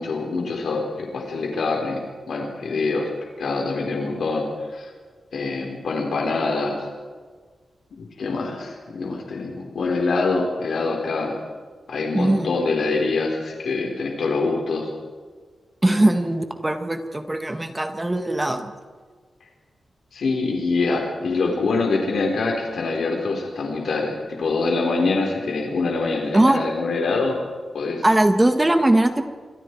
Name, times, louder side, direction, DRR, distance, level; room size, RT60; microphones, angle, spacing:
voice 1, 0.0-2.0 2.3-3.1 3.4-4.4 4.7-4.9 5.3-6.9 8.0-11.4 11.9-14.9 15.9-16.1 20.1-27.4 27.7-28.0, left 3 dB, 65° left, 1 dB, 4.4 m, -25 dB
voice 2, 12.1-12.5 15.8-18.7 26.3-26.6 28.0-29.2, right 1 dB, 15° right, 6 dB, 1.6 m, -20 dB
27.5 x 26.5 x 4.8 m, 1.5 s
wide cardioid pair, 175°, 0 cm